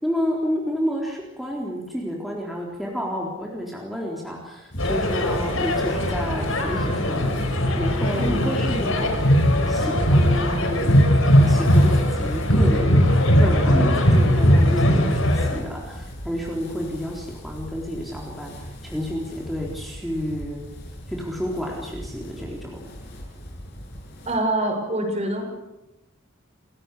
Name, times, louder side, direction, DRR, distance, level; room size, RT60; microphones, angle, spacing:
voice 1, 0.0-9.3 9.7-10.9 11.4-20.6 21.1-22.8, equal, ahead, -2 dB, 3.9 m, -30 dB
sound 1, 4.7-24.4, equal, 55° left, 7.8 m, -38 dB
sound 2, 4.8-15.6, equal, 90° left, 5.1 m, -19 dB
voice 2, 8.1-8.5 13.7-13.9 24.3-25.5, right 1 dB, 35° right, 4 dB, 6.1 m, -25 dB
29.0 x 17.0 x 8.5 m, 0.97 s
head